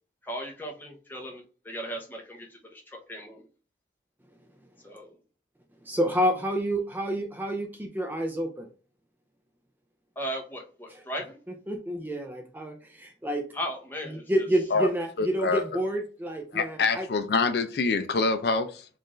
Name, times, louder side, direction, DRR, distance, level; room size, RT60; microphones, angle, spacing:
voice 1, 0.2-3.5 4.8-5.2 10.2-11.4 13.5-14.5, equal, 10° left, 0.8 m, -37 dB
voice 2, 5.9-8.7 11.7-13.5 14.3-17.1, equal, 10° right, 0.4 m, -28 dB
voice 3, 15.2-15.6 16.5-18.9, left 4 dB, 55° left, 0.4 m, -25 dB
4.4 x 2.5 x 3.0 m
head